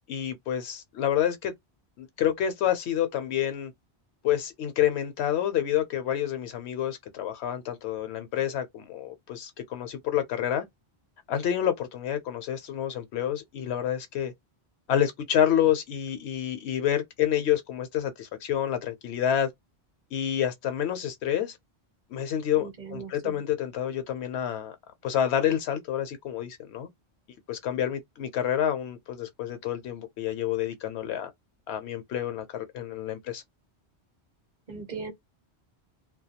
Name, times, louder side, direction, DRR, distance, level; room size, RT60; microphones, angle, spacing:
voice 1, 0.1-1.5 2.0-3.7 4.2-10.7 11.3-14.3 14.9-19.5 20.1-21.6 22.1-24.7 25.0-26.9 27.5-31.3 31.7-33.4, left 10 dB, 75° left, 0.8 m, -28 dB
voice 2, 22.6-23.4 34.7-35.1, right 4 dB, 45° right, 0.7 m, -39 dB
2.2 x 2.1 x 2.7 m
omnidirectional pair, 1.1 m